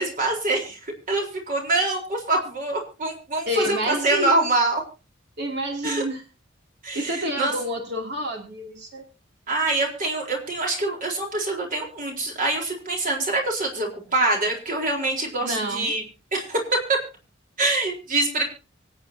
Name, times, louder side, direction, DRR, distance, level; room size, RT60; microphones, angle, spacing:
voice 1, 0.0-4.8 5.8-6.0 6.8-7.5 9.5-16.0 16.3-16.6 16.9-17.0 17.6-18.4, right 2 dB, 45° right, 0 dB, 4.0 m, -25 dB
voice 2, 3.5-4.5 5.4-6.2 6.9-9.0 15.4-15.9, equal, 60° right, 2 dB, 2.9 m, -28 dB
24.5 x 8.6 x 2.8 m, 0.32 s
head